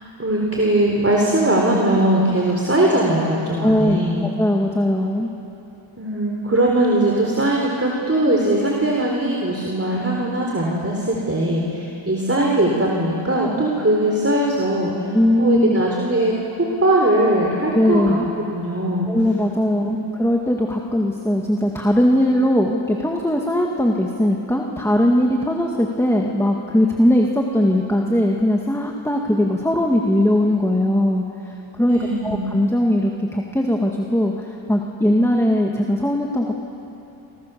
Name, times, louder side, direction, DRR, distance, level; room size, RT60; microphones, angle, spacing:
voice 1, 0.2-4.2 6.0-14.9 15.4-18.2 18.5-19.1 19.7-19.9 31.9-32.4, right 1 dB, 30° right, -2 dB, 3.8 m, -20 dB
voice 2, 3.6-5.3 15.1-15.7 17.7-18.3 19.1-36.5, left 1 dB, 5° left, 0 dB, 2.2 m, -19 dB
29.0 x 26.0 x 7.0 m, 2.9 s
wide cardioid pair, 55°, 49 cm